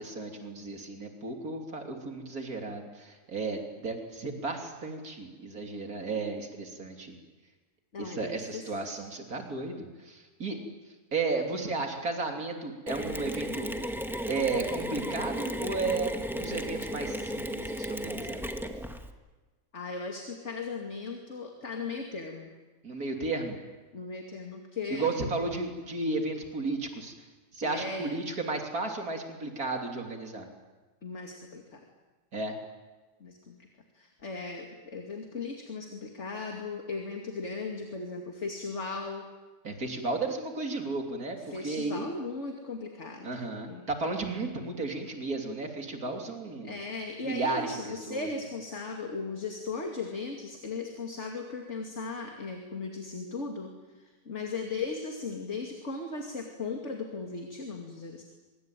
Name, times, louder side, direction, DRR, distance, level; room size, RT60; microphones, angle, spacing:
voice 1, 0.0-7.1 8.0-10.6 11.1-13.7 14.3-18.4 22.8-23.6 24.9-27.1 27.5-30.5 32.3-32.6 39.6-42.1 43.2-46.8 47.2-48.3, right 3 dB, 80° right, 3 dB, 3.6 m, -34 dB
voice 2, 7.9-8.6 8.9-9.1 19.7-22.5 23.9-25.1 27.6-28.0 31.0-31.8 33.2-33.6 33.9-39.3 41.5-43.3 43.7-43.8 46.6-53.7 54.3-58.2, left 4 dB, 50° left, 2 dB, 2.8 m, -37 dB
Mechanisms, 12.9-19.1, equal, ahead, 1.7 m, -35 dB
24.5 x 23.0 x 9.2 m, 1.3 s
omnidirectional pair, 1.5 m